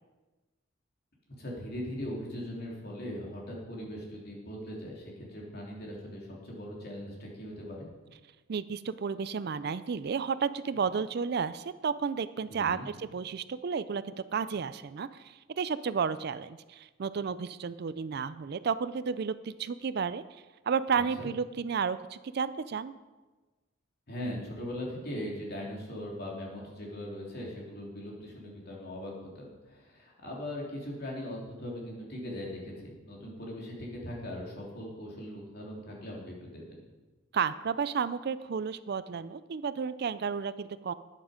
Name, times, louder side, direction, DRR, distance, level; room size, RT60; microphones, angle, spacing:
voice 1, 1.4-7.9 12.5-12.9 20.9-21.3 24.1-36.7, left 1 dB, 50° left, -3 dB, 3.2 m, -40 dB
voice 2, 8.5-20.2 20.7-22.9 37.3-40.9, right 6 dB, 50° right, 15 dB, 0.4 m, -32 dB
13.0 x 9.6 x 5.1 m, 1.2 s
head